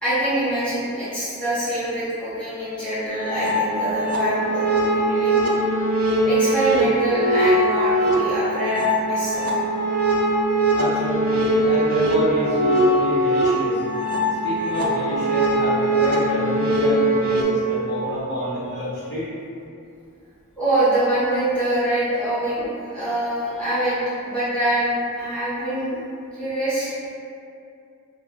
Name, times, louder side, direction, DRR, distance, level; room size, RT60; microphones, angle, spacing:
voice 1, 0.0-5.7 6.2-9.4 20.6-26.0 26.3-26.9, right 1 dB, 5° left, -13 dB, 0.7 m, -24 dB
sound 1, 3.1-17.4, right 1 dB, 65° right, 0.4 m, -21 dB
voice 2, 10.7-13.8 14.4-19.3, left 1 dB, 50° left, -9 dB, 0.9 m, -27 dB
2.4 x 2.2 x 3.4 m, 2.5 s
head